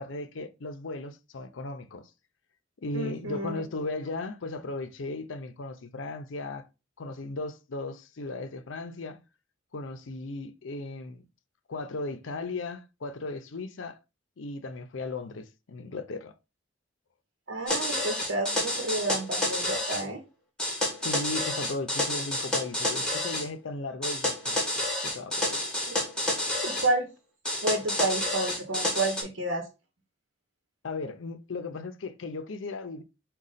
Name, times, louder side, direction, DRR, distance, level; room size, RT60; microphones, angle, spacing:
voice 1, 0.0-2.1 2.8-6.7 7.0-9.2 9.7-11.3 11.7-14.0 14.4-16.3 21.0-24.6 25.0-25.7 30.8-33.0, left 3 dB, 85° left, 0.6 m, -36 dB
voice 2, 2.9-3.6 17.5-20.2 25.9-26.0 26.6-27.1 27.6-29.7, right 2 dB, 80° right, 1.0 m, -30 dB
sound 1, 17.7-20.0 20.6-23.5 24.0-26.9 27.5-29.2, left 1 dB, 5° left, 1.4 m, -29 dB
5.0 x 2.3 x 4.0 m
head